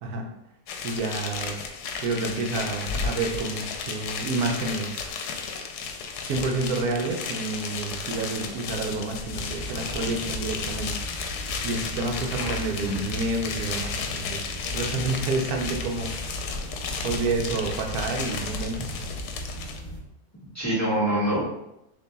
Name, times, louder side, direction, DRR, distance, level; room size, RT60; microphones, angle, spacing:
voice 1, 0.0-0.3 0.8-1.6 2.0-5.1 6.2-10.9 11.6-14.4 14.7-16.4 17.0-19.0, right 3 dB, 75° right, 2 dB, 1.1 m, -29 dB
sound 1, 0.7-19.8, left 5 dB, 85° left, 1.1 m, -33 dB
sound 2, 9.3-20.0, equal, 35° left, 1.0 m, -38 dB
voice 2, 12.3-13.0 20.5-21.4, right 1 dB, 10° left, -8 dB, 1.4 m, -26 dB
6.6 x 2.9 x 2.3 m, 0.88 s
omnidirectional pair, 1.6 m